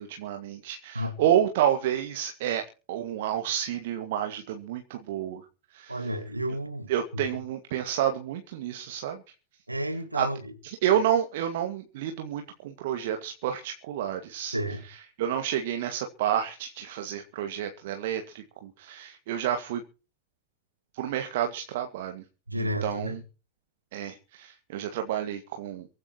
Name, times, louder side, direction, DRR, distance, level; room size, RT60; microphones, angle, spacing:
voice 1, 0.0-5.4 5.7-6.1 6.9-9.2 10.1-10.3 10.6-14.6 14.9-19.8 20.9-22.2 22.6-23.2 23.9-25.9, right 10 dB, 55° right, 1.9 m, -29 dB
voice 2, 5.9-7.3 9.7-10.5 14.5-14.8 22.5-23.2, equal, 85° right, 1.9 m, -32 dB
23.5 x 14.5 x 3.0 m
figure-of-eight pair, 90°, 0 cm